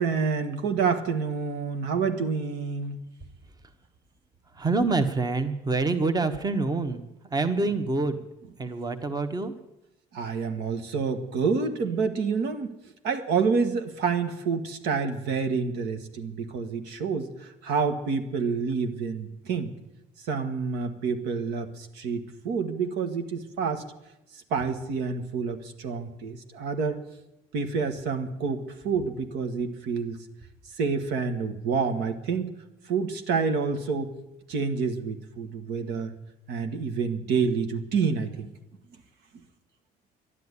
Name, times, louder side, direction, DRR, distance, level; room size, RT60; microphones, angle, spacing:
voice 1, 0.0-3.0 10.1-12.7 13.0-19.7 20.2-23.8 24.3-27.0 27.5-30.2 30.8-32.5 32.8-34.1 34.5-36.1 36.5-38.5, right 5 dB, 85° right, 6 dB, 1.6 m, -28 dB
voice 2, 4.5-8.3 8.6-9.5, right 3 dB, 25° right, 9 dB, 1.2 m, -26 dB
12.0 x 10.5 x 9.7 m, 0.92 s
cardioid pair, 110°, 17 cm